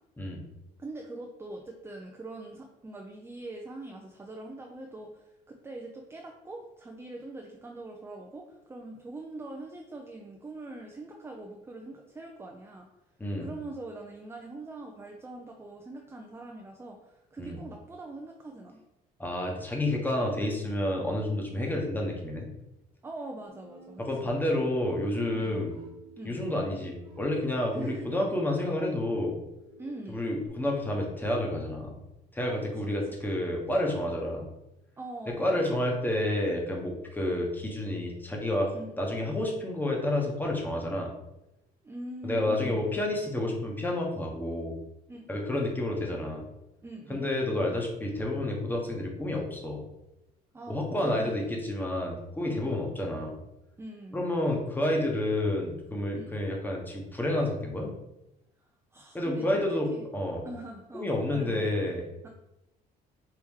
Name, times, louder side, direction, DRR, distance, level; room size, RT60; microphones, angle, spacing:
voice 1, 0.8-12.9 13.4-18.8 21.6-21.8 23.0-24.3 25.3-25.6 26.2-26.4 27.7-28.1 29.8-30.2 32.4-33.2 35.0-35.6 38.7-39.0 41.8-42.8 45.1-45.5 46.8-47.2 50.5-51.6 52.4-52.8 53.8-54.3 56.2-56.4 58.9-60.1 60.4-61.7 62.2-62.3, right 2 dB, 15° right, 1 dB, 0.5 m, -43 dB
voice 2, 19.2-22.5 24.0-25.7 26.2-29.4 30.1-32.0 32.3-34.4 35.4-41.1 42.2-44.7 45.3-46.4 47.1-49.8 50.7-53.4 54.1-57.9 59.1-60.4 60.9-62.1, left 1 dB, 10° left, -1 dB, 1.1 m, -30 dB
sound 1, 23.5-30.5, equal, 30° right, 1.3 m, -50 dB
4.7 x 2.9 x 3.6 m, 0.91 s
cardioid pair, 110°, 17 cm